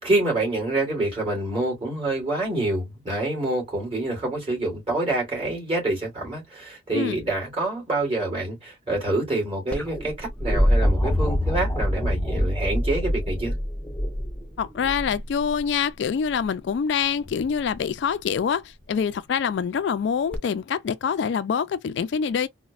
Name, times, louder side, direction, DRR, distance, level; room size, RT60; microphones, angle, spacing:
voice 1, 0.0-13.5, right 2 dB, 30° right, 2.5 m, -26 dB
sound 1, 9.7-15.6 17.2-17.8 20.3-20.4, equal, 5° left, 0.6 m, -25 dB
voice 2, 14.6-22.5, left 7 dB, 65° left, 0.3 m, -25 dB
4.0 x 2.1 x 2.3 m
head